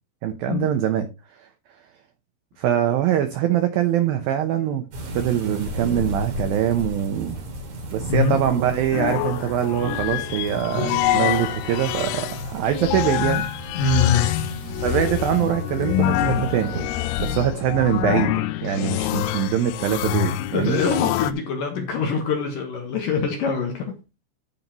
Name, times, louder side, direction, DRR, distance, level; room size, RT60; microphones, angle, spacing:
voice 1, 0.2-1.1 2.6-7.4 7.9-13.5 14.8-16.7 17.2-18.3 18.6-20.8, right 10 dB, 85° right, 2.0 m, -23 dB
sound 1, 4.9-16.9, right 1 dB, 50° right, 3.3 m, -33 dB
sound 2, 8.9-21.3, left 13 dB, 85° left, 2.3 m, -25 dB
voice 2, 13.7-14.5 20.5-24.0, left 4 dB, 65° left, 2.3 m, -24 dB
15.0 x 5.4 x 3.0 m
omnidirectional pair, 5.3 m